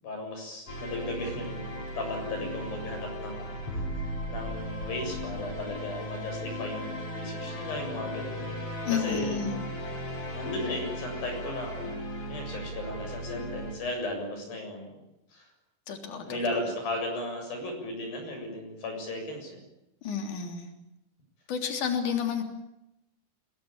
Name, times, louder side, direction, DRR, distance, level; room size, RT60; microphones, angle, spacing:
voice 1, 0.0-8.6 8.9-9.5 10.3-11.9 12.3-15.0 15.3-15.5 16.2-19.6, left 1 dB, 85° left, 3 dB, 9.0 m, -36 dB
sound 1, 0.7-13.7, left 1 dB, 40° left, 7.9 m, -36 dB
voice 2, 8.8-9.6 15.9-16.6 20.0-20.7 21.5-22.4, left 7 dB, 60° left, 5 dB, 4.7 m, -31 dB
28.5 x 21.0 x 8.8 m, 0.85 s
omnidirectional pair, 4.0 m